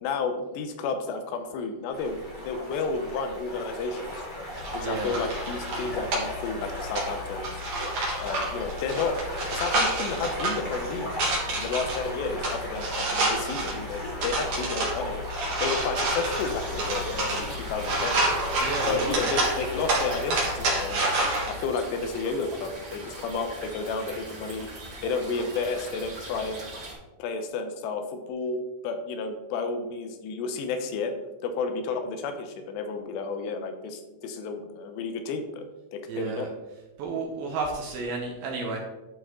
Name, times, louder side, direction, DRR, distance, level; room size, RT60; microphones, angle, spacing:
voice 1, 0.0-4.1 4.7-7.6 8.2-9.2 9.5-11.1 11.5-15.3 15.6-18.3 18.9-21.1 21.5-24.7 25.0-26.6 27.2-31.1 31.4-35.7 35.9-36.5, left 4 dB, 75° left, 7 dB, 2.8 m, -31 dB
sound 1, 1.9-20.6, left 1 dB, 55° left, 0.5 m, -37 dB
sound 2, 4.5-21.5, right 2 dB, 50° right, 3.0 m, -29 dB
voice 2, 4.8-5.1 18.6-19.2 36.1-36.5 37.0-38.8, right 3 dB, 75° right, 1 dB, 2.4 m, -32 dB
sound 3, 16.3-26.9, right 1 dB, 25° right, 2.7 m, -41 dB
11.5 x 5.6 x 3.7 m, 1.1 s
omnidirectional pair, 5.3 m